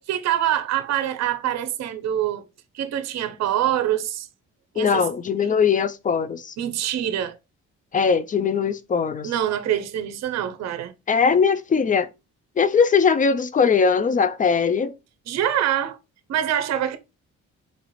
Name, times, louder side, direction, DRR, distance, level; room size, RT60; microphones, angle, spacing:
voice 1, 0.0-2.5 2.7-4.3 4.7-5.1 6.6-7.4 9.2-10.9 15.3-16.0 16.3-17.0, right 11 dB, 60° right, 0.6 m, -25 dB
voice 2, 4.8-6.5 7.9-9.3 11.1-12.1 12.6-15.0, left 6 dB, 25° left, 0.4 m, -20 dB
4.0 x 2.4 x 3.0 m
cardioid pair, 90°, 30 cm